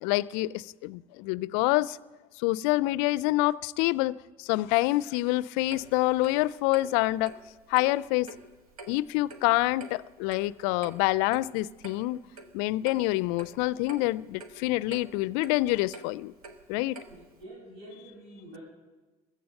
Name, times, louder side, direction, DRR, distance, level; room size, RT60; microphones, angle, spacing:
voice 1, 0.0-2.0 2.4-7.3 7.7-8.3 8.9-12.2 12.5-16.3 16.7-17.0, left 18 dB, 65° left, 0.4 m, -27 dB
Clock, 5.7-17.4, right 3 dB, 85° right, 1.1 m, -49 dB
voice 2, 17.1-18.6, right 1 dB, 70° right, 5.9 m, -47 dB
15.5 x 13.5 x 6.5 m
hypercardioid pair, 65°, 19 cm